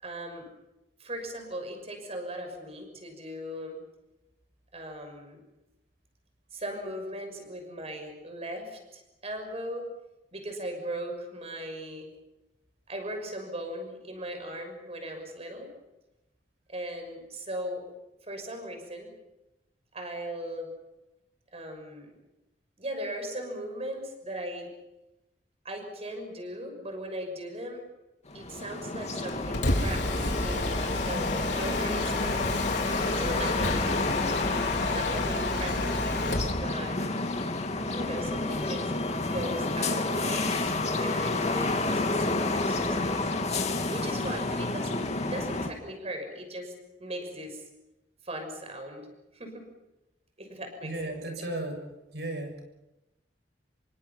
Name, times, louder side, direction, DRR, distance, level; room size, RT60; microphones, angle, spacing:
voice 1, 0.0-0.5 1.0-3.8 4.7-5.4 6.5-9.9 10.3-12.1 12.9-15.7 16.7-17.8 18.2-19.1 19.9-20.7 21.5-22.1 22.8-24.7 25.6-27.8 28.3-32.4 33.1-33.9 34.3-37.0 37.9-38.9 39.2-43.2 43.9-46.7 47.0-47.6 48.2-49.1 49.3-49.7 50.4-51.5, right 1 dB, 35° right, 5 dB, 6.2 m, -38 dB
sound 1, 28.3-45.7, left 2 dB, 40° left, 2.5 m, -30 dB
Mechanisms, 29.3-36.6, left 2 dB, 85° left, 3.5 m, -30 dB
voice 2, 50.8-51.8 52.1-52.6, right 2 dB, 70° right, 5 dB, 6.8 m, -35 dB
27.5 x 24.5 x 5.7 m, 0.95 s
head